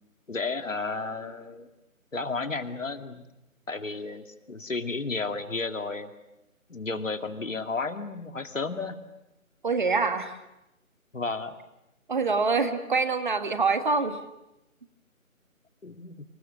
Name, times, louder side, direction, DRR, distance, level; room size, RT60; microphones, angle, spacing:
voice 1, 0.3-1.7 2.1-3.2 3.7-6.1 6.7-9.0 11.1-11.6 15.8-16.2, left 3 dB, 65° left, 7 dB, 2.5 m, -32 dB
voice 2, 9.6-10.3 12.1-14.2, right 4 dB, 35° right, 9 dB, 1.7 m, -25 dB
29.5 x 27.5 x 6.6 m, 0.92 s
figure-of-eight pair, 155°, 42 cm